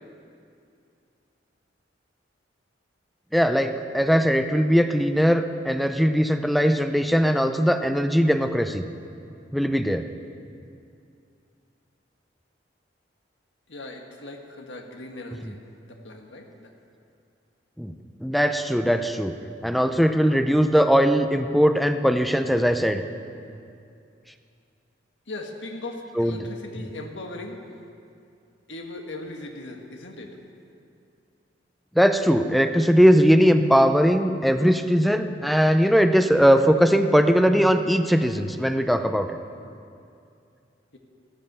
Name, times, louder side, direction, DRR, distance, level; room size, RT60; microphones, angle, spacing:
voice 1, 3.3-8.8 9.5-10.1 15.4-15.5 17.8-17.9 18.2-19.3 19.6-23.0 26.2-26.5 26.8-26.9 32.0-39.4, equal, ahead, 8 dB, 0.6 m, -20 dB
voice 2, 13.7-15.6 15.9-16.7 25.3-27.6 28.7-30.3, left 2 dB, 85° left, 2 dB, 1.6 m, -38 dB
14.5 x 14.0 x 6.8 m, 2.5 s
head